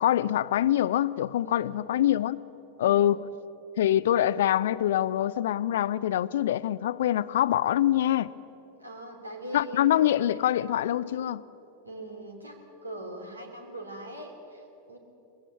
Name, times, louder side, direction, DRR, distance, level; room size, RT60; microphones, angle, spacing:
voice 1, 0.0-2.4 2.8-3.2 3.8-8.3 9.5-11.4, left 12 dB, 60° left, 18 dB, 0.5 m, -24 dB
voice 2, 1.4-1.8 2.8-3.1 8.8-9.9 11.8-15.0, right 1 dB, 85° right, 3 dB, 3.0 m, -41 dB
20.5 x 16.0 x 8.4 m, 2.8 s
figure-of-eight pair, 90°, 0 cm